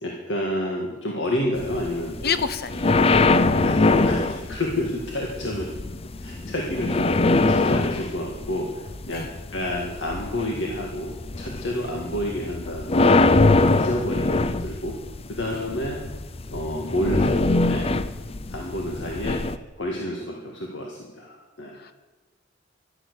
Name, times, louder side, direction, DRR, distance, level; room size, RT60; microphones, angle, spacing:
voice 1, 0.0-2.4 3.6-5.7 6.2-13.2 13.5-15.0 15.3-16.0 16.5-17.4 17.7-17.9 18.5-19.4 19.8-21.8, left 1 dB, 70° left, 0 dB, 1.9 m, -29 dB
sound 1, 1.6-19.6, left 2 dB, 30° left, 0.6 m, -23 dB
voice 2, 2.2-2.9 9.1-9.3 13.7-13.8 21.8-21.9, left 5 dB, 55° left, 12 dB, 0.9 m, -28 dB
12.0 x 11.0 x 8.3 m, 1.2 s
head